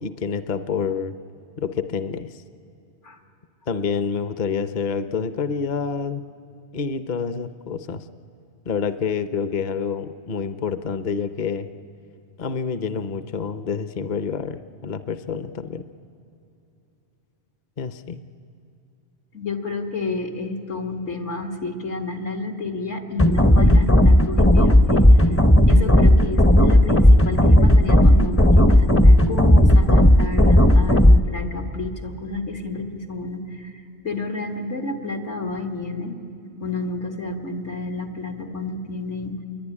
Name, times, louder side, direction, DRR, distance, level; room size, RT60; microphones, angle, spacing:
voice 1, 0.0-1.2 1.6-2.4 3.7-6.2 6.7-8.0 8.7-11.7 12.4-15.8 17.8-18.2, left 6 dB, 45° left, 11 dB, 0.8 m, -27 dB
voice 2, 19.3-25.2 25.7-33.7 34.0-36.2 36.6-39.4, left 3 dB, 80° left, 3 dB, 2.4 m, -30 dB
sound 1, 23.2-31.2, left 1 dB, 15° left, 0.5 m, -14 dB
26.5 x 22.5 x 9.9 m, 2.7 s
omnidirectional pair, 1.2 m